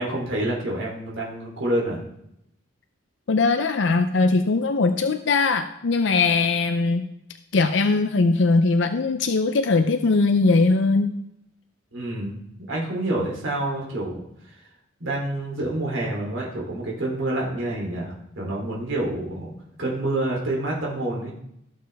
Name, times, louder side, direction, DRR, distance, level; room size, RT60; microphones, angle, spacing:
voice 1, 0.0-2.0 11.9-12.4 12.7-14.3 15.0-19.5 19.8-21.3, right 1 dB, 80° right, -3 dB, 3.1 m, -27 dB
voice 2, 3.3-7.1 7.5-11.1, left 3 dB, 65° left, 8 dB, 0.5 m, -20 dB
17.0 x 6.7 x 3.4 m, 0.79 s
head